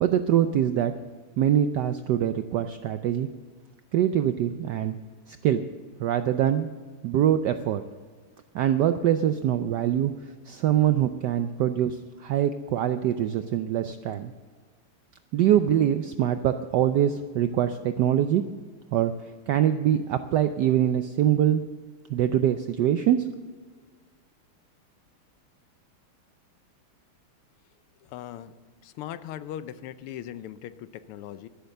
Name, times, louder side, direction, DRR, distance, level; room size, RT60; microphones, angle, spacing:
voice 1, 0.0-0.9 1.4-3.3 3.9-5.0 5.3-5.6 6.0-6.7 7.0-7.8 8.5-10.1 10.5-14.3 15.3-18.4 18.9-19.1 19.5-21.6 22.1-23.2, right 10 dB, 80° right, 10 dB, 0.9 m, -24 dB
voice 2, 28.0-28.5 28.8-31.5, left 11 dB, 85° left, 14 dB, 1.6 m, -39 dB
11.5 x 11.5 x 6.6 m, 1.5 s
omnidirectional pair, 2.4 m